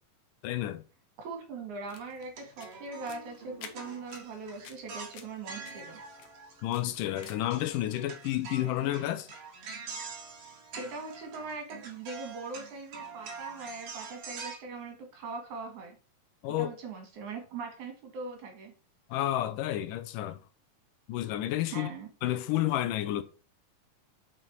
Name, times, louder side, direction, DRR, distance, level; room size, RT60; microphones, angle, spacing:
voice 1, 0.4-0.8 6.6-9.3 16.4-16.8 19.1-20.4 21.1-21.9 22.2-23.2, left 13 dB, 85° left, 2.2 m, -30 dB
voice 2, 1.2-6.0 10.5-16.0 16.5-18.7 21.7-22.1, right 4 dB, 65° right, 3.2 m, -41 dB
Footsteps Sandals on Concrete, 1.7-7.6, left 8 dB, 70° left, 1.5 m, -53 dB
sound 1, 2.3-6.9 7.2-14.6, right 4 dB, 50° right, 2.5 m, -45 dB
6.1 x 5.7 x 4.5 m
omnidirectional pair, 3.9 m